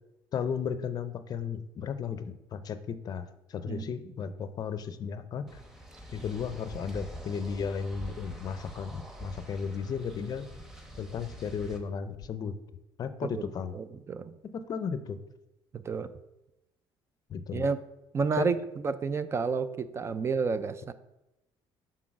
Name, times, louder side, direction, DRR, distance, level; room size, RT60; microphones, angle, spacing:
voice 1, 0.3-5.6 6.1-10.5 11.0-12.6 13.0-13.7 14.4-15.2 17.3-17.7 18.4-18.5, left 6 dB, 45° left, 11 dB, 0.5 m, -34 dB
sound 1, 5.5-11.8, equal, 5° right, 1.0 m, -45 dB
voice 2, 13.7-14.3 15.7-16.1 17.5-17.8 18.1-20.9, right 5 dB, 30° right, 13 dB, 0.4 m, -30 dB
6.2 x 3.9 x 6.0 m, 0.93 s
cardioid pair, 120°, 10 cm